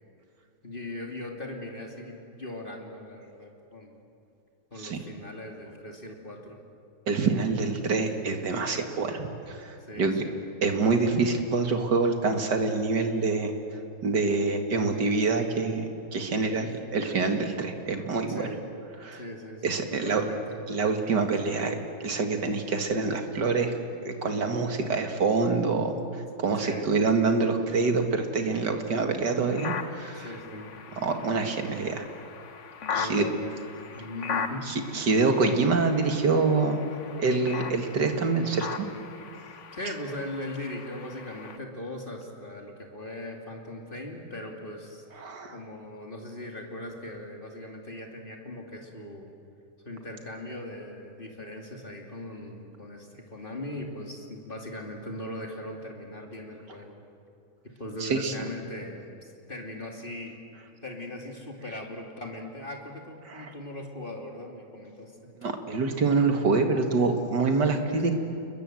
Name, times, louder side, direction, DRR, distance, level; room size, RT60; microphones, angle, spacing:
voice 1, 0.6-4.0 4.7-6.6 9.8-10.4 16.6-16.7 18.3-18.7 19.1-20.7 26.6-26.9 30.2-30.8 32.9-33.5 33.9-34.7 39.7-45.0 45.5-49.3 49.8-57.0 57.8-60.4 60.8-65.3 67.9-68.1, left 1 dB, 25° left, 1 dB, 2.9 m, -39 dB
voice 2, 7.1-10.2 10.6-13.5 14.0-18.5 19.0-19.2 19.6-20.2 20.7-23.7 24.1-26.0 26.4-30.3 31.0-32.0 32.9-33.2 34.7-36.9 37.2-38.9 45.2-45.5 58.0-58.3 63.3-63.5 65.4-68.1, right 4 dB, 55° right, 5 dB, 2.5 m, -26 dB
sound 1, 29.5-41.6, left 6 dB, 45° left, 1.1 m, -39 dB
30.0 x 21.5 x 7.8 m, 2.6 s
omnidirectional pair, 2.2 m